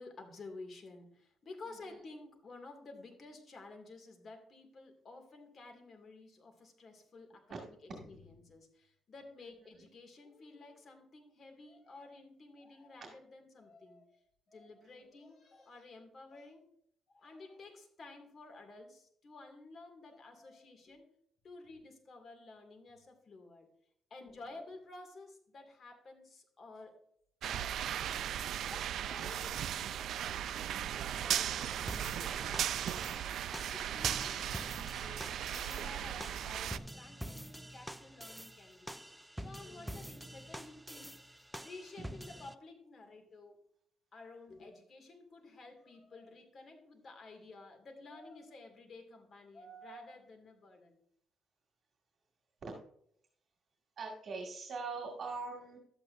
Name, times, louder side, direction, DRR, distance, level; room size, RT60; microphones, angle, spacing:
voice 1, 0.0-14.2 14.5-16.7 17.1-21.1 21.4-23.7 24.1-27.0 27.5-33.3 33.7-39.0 39.4-41.2 41.5-43.6 44.1-51.0, left 3 dB, 45° left, 4 dB, 2.3 m, -53 dB
voice 2, 1.7-2.0 7.5-7.6 9.8-9.9 14.8-15.0 39.6-40.1 54.0-55.8, right 4 dB, 50° right, 0 dB, 2.2 m, -44 dB
sound 1, 27.4-36.8, right 10 dB, 75° right, 0.4 m, -37 dB
sound 2, 31.9-42.5, equal, 5° right, 0.4 m, -47 dB
12.0 x 8.4 x 2.6 m, 0.68 s
cardioid pair, 90°, 0 cm